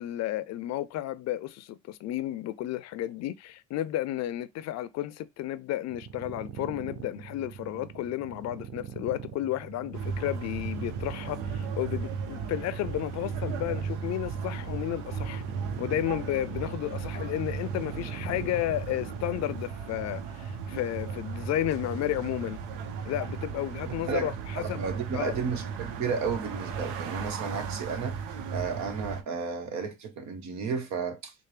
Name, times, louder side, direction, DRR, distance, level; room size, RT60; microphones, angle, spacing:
voice 1, 0.0-15.4 15.8-22.6 23.1-24.9 25.1-25.4, left 13 dB, 60° left, 0.5 m, -32 dB
sound 1, 5.9-19.7, right 8 dB, 50° right, 0.6 m, -43 dB
sound 2, 9.9-29.2, right 6 dB, 80° right, 0.8 m, -36 dB
voice 2, 24.1-28.2 28.5-31.3, right 5 dB, 65° right, 1.1 m, -33 dB
4.5 x 2.1 x 3.3 m
supercardioid pair, 85°, 30 cm